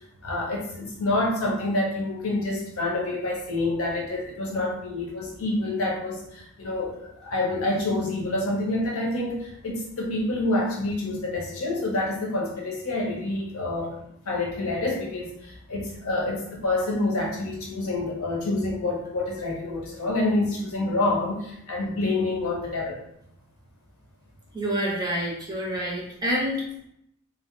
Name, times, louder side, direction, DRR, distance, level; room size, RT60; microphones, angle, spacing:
voice 1, 0.2-14.0 14.2-23.0, left 2 dB, 80° left, -1 dB, 0.6 m, -27 dB
voice 2, 24.5-26.9, equal, 20° right, -3 dB, 0.5 m, -28 dB
2.1 x 2.0 x 2.9 m, 0.75 s
head